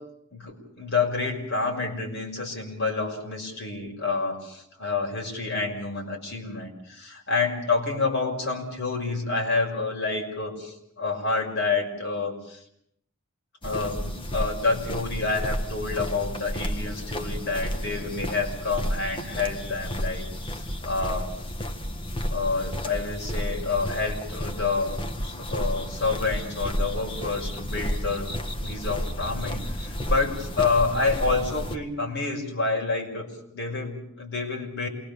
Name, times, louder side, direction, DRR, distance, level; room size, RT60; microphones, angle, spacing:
voice 1, 0.3-12.6 13.6-20.3 20.5-21.3 22.3-25.0 25.2-28.3 28.6-33.3 33.5-34.9, left 3 dB, 55° left, 1 dB, 5.8 m, -28 dB
sound 1, 13.6-31.8, equal, 25° left, 1.5 m, -32 dB
28.0 x 21.5 x 7.0 m, 0.73 s
head